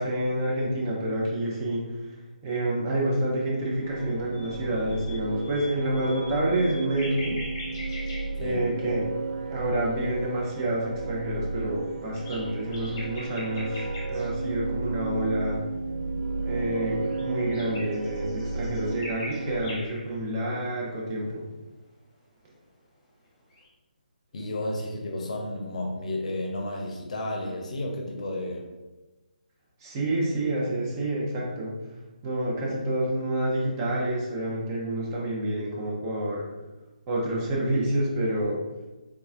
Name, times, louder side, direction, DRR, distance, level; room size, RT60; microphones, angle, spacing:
voice 1, 0.0-2.2 2.4-7.4 8.4-9.2 9.5-15.6 16.4-21.4 29.8-31.7 32.2-36.5 37.1-38.6, right 1 dB, 25° right, -3 dB, 0.7 m, -28 dB
sound 1, 3.8-19.8, right 3 dB, 60° right, 0.4 m, -33 dB
sound 2, 4.3-9.1 9.4-9.9 10.7-10.8 11.5-14.3 16.6-20.2 23.5-23.7, left 1 dB, 25° left, 0.9 m, -43 dB
voice 2, 24.3-28.6, left 1 dB, 50° left, 1 dB, 0.7 m, -32 dB
3.4 x 3.0 x 2.4 m, 1.1 s
figure-of-eight pair, 145°, 5 cm